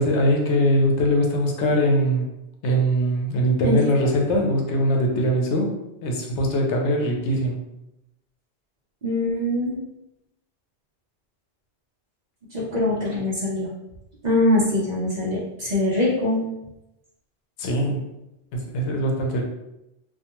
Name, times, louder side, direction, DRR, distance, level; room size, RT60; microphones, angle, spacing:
voice 1, 0.0-2.3 2.6-5.7 6.0-7.6 17.6-18.0 18.5-19.4, equal, 80° left, 1 dB, 0.9 m, -21 dB
voice 2, 9.0-9.8 12.5-13.7 14.2-16.4, left 1 dB, 50° right, -5 dB, 0.6 m, -23 dB
2.3 x 2.2 x 2.8 m, 0.88 s
omnidirectional pair, 1.2 m